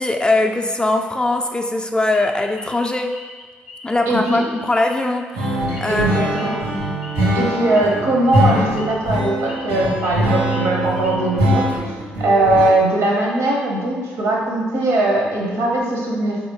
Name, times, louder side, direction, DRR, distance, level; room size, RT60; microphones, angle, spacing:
voice 1, 0.0-3.1 3.8-6.6, left 2 dB, 15° left, 4 dB, 0.3 m, -21 dB
sound 1, 2.1-4.0 4.3-7.3 7.7-7.9 8.2-8.4 8.8-9.1 9.4-10.1 10.4-11.5, left 3 dB, 90° left, 0.4 m, -41 dB
voice 2, 4.1-4.4 5.9-6.5 7.3-11.9 12.2-16.4, right 2 dB, 65° right, -1 dB, 0.8 m, -20 dB
sound 2, 5.3-12.7, equal, 80° right, 1.3 m, -22 dB
4.1 x 2.8 x 2.8 m, 1.4 s
hypercardioid pair, 45°, 5 cm